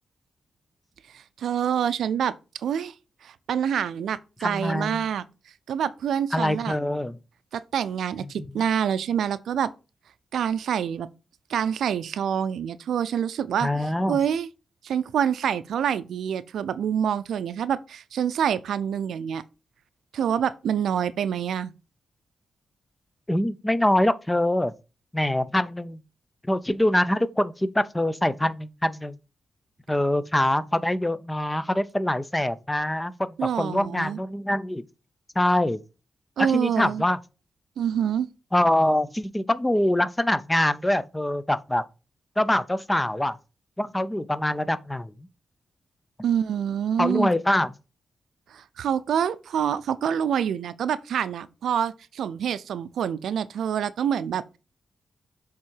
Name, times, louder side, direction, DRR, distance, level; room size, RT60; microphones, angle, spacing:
voice 1, 1.1-2.3 2.6-2.9 3.2-5.2 5.7-6.8 7.5-9.7 10.3-11.1 11.5-13.7 14.1-14.5 14.8-19.4 20.1-21.7 33.4-34.2 36.4-37.0 37.8-38.3 46.2-47.3 48.5-54.6, right 8 dB, 85° right, 0.4 m, -26 dB
voice 2, 4.4-5.1 6.3-7.2 8.2-8.5 13.6-14.2 23.3-24.7 25.1-26.0 26.4-29.2 29.9-34.8 35.4-35.8 36.4-37.2 38.5-41.9 42.4-43.4 43.8-45.3 47.0-47.7, left 1 dB, 10° left, 0.5 m, -24 dB
7.5 x 3.6 x 4.5 m
cardioid pair, 85°, 0 cm